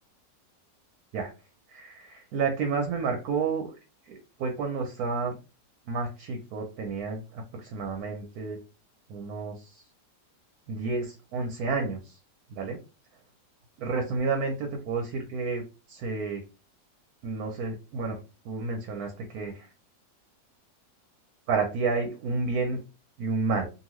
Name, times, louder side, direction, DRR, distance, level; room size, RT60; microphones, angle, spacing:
voice 1, 1.7-3.7 4.1-5.3 5.9-8.6 9.1-9.8 10.7-12.2 12.5-12.8 13.8-15.6 15.9-16.4 17.2-18.2 18.4-19.7 21.5-22.8 23.2-23.7, right 4 dB, 65° right, 3 dB, 1.0 m, -30 dB
2.8 x 2.5 x 3.0 m, 0.31 s
omnidirectional pair, 1.9 m